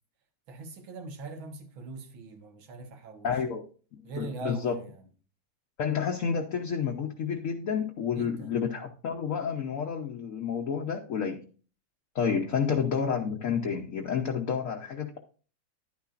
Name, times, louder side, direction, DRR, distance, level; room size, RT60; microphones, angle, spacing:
voice 1, 0.5-3.4 4.0-5.0 8.2-8.5 12.4-12.6, right 3 dB, 85° right, 2.0 m, -41 dB
voice 2, 3.2-3.6 4.2-4.8 5.8-11.5 12.1-15.2, left 6 dB, 60° left, 0.9 m, -30 dB
10.5 x 9.6 x 2.4 m
omnidirectional pair, 2.1 m